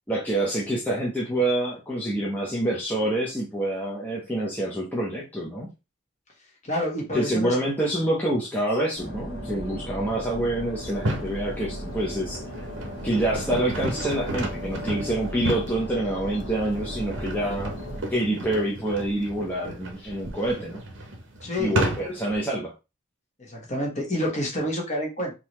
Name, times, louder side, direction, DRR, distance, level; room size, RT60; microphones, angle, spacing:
voice 1, 0.1-5.7 7.1-12.4 13.0-17.7 18.1-20.8 21.6-22.7, right 1 dB, 10° left, -4 dB, 0.7 m, -27 dB
voice 2, 6.6-7.5 21.4-21.8 23.4-25.3, left 1 dB, 35° left, -1 dB, 1.3 m, -28 dB
sound 1, 9.0-18.0, equal, 85° left, 1.6 m, -36 dB
sound 2, 10.9-11.4 12.0-22.4, right 1 dB, 55° right, 0.8 m, -33 dB
3.8 x 2.8 x 3.0 m, 0.27 s
head